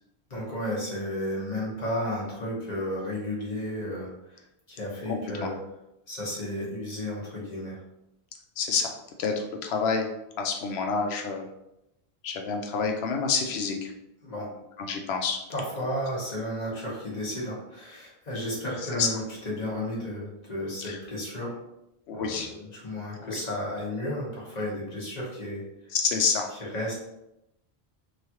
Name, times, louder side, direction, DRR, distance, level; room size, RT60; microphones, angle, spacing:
voice 1, 0.3-5.6 6.1-7.8 14.2-14.5 15.5-21.6 22.1-26.0 26.6-26.9, left 1 dB, 45° left, -5 dB, 1.1 m, -33 dB
voice 2, 8.6-8.9 9.2-10.1 10.4-11.5 12.2-13.9 14.8-15.4 18.9-19.1 20.8-21.0 22.1-22.5 23.2-23.4 25.9-26.5, left 5 dB, 90° left, 3 dB, 0.8 m, -28 dB
3.0 x 2.4 x 2.8 m, 0.86 s
omnidirectional pair, 1.0 m